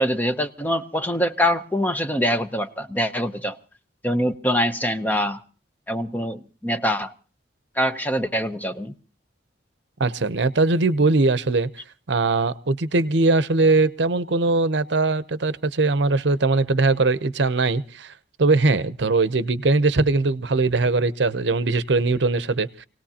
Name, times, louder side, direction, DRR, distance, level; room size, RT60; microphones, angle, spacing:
voice 1, 0.0-3.6 4.0-5.4 5.9-7.1 7.8-8.9, equal, 10° left, 0.7 m, -24 dB
voice 2, 10.0-11.7 12.1-18.1 18.4-22.9, right 3 dB, 70° right, 0.7 m, -21 dB
27.0 x 18.0 x 2.8 m
head